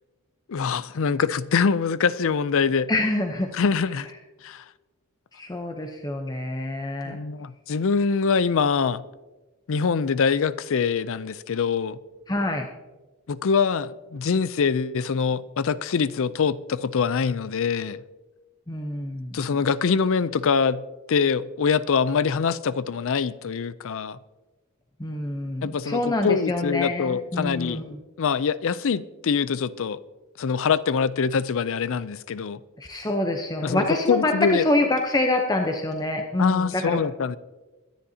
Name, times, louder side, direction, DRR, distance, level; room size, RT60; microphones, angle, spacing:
voice 1, 0.5-2.9 3.5-4.1 4.4-4.6 7.0-9.1 9.7-12.0 13.3-18.0 19.3-24.2 25.6-27.8 28.2-30.0 30.4-32.6 33.6-34.6 36.4-37.4, left 5 dB, 65° left, 0.5 m, -24 dB
voice 2, 2.9-3.5 5.3-7.2 12.3-12.7 18.7-19.4 25.0-28.0 32.8-37.0, left 2 dB, 20° left, 0.8 m, -26 dB
22.5 x 10.5 x 2.8 m
head